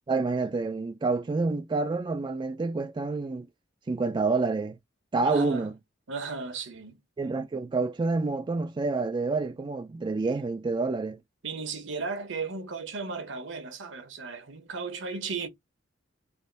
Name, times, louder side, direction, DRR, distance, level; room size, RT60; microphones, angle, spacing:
voice 1, 0.1-3.5 3.9-4.8 5.1-5.8 7.2-11.2, right 3 dB, 25° right, 0.3 m, -28 dB
voice 2, 5.2-5.7 6.1-7.0 11.4-15.5, right 4 dB, 70° right, 0.9 m, -35 dB
3.4 x 2.4 x 3.9 m
head